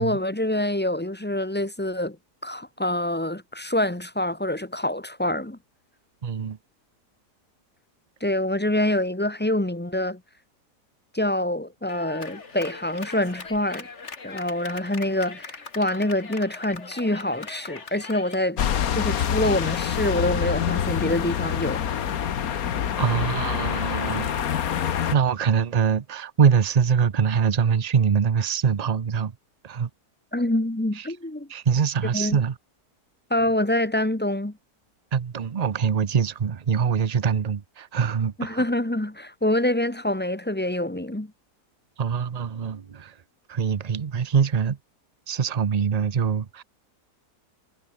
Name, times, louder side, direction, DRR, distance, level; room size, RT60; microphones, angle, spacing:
voice 1, 0.0-2.2 2.4-5.6 8.2-10.2 11.1-13.9 14.2-18.6 18.9-21.8 30.3-31.5 32.1-32.4 33.3-34.6 38.4-41.3, left 1 dB, 5° left, 1.0 m, -26 dB
voice 2, 6.2-6.6 23.0-29.3 29.6-29.9 31.0-31.1 31.5-32.5 35.1-38.6 42.0-43.1 43.5-44.8 45.3-46.6, right 6 dB, 55° right, 0.4 m, -24 dB
Clapping, 11.9-18.4, left 4 dB, 40° left, 2.3 m, -40 dB
sound 1, 18.6-25.1, left 9 dB, 60° left, 1.5 m, -26 dB
omnidirectional pair, 1.8 m